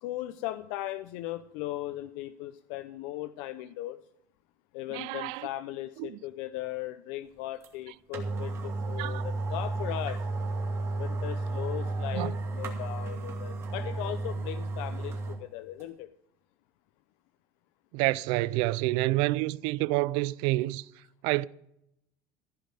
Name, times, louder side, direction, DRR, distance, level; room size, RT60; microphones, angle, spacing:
voice 1, 0.0-4.0 4.7-10.2 11.0-16.1, left 15 dB, 75° left, 0.6 m, -38 dB
voice 2, 4.9-5.5 6.0-6.2 9.0-9.3 12.1-12.4 17.9-20.9 21.2-21.5, right 19 dB, 70° right, 0.4 m, -28 dB
sound 1, 7.6-7.7 8.1-15.4 15.8-15.9, right 2 dB, 30° right, 2.4 m, -33 dB
15.0 x 5.2 x 9.1 m
cardioid pair, 150°, 9 cm